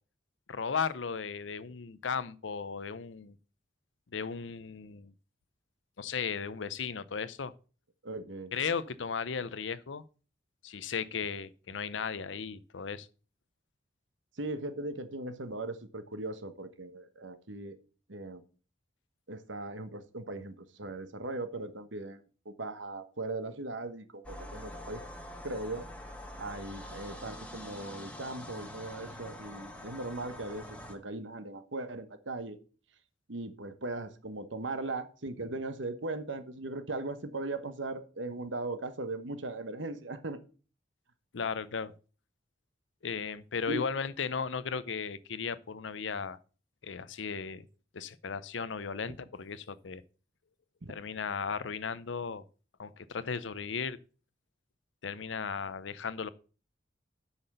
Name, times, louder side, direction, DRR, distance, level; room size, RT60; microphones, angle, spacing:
voice 1, 0.5-3.4 4.1-5.1 6.0-7.5 8.5-10.0 10.6-13.1 41.3-41.9 43.0-46.4 46.8-47.7 47.9-50.0 50.9-52.4 52.8-54.0 55.0-56.3, left 6 dB, 80° left, 0.6 m, -36 dB
voice 2, 8.0-8.5 14.4-17.8 18.1-18.4 19.3-25.0 25.4-25.9 26.4-32.6 33.3-40.4 43.7-43.9 50.8-50.9, right 2 dB, 80° right, 1.2 m, -38 dB
sound 1, 24.2-30.9, left 1 dB, 5° left, 1.4 m, -45 dB
8.0 x 5.9 x 6.6 m
head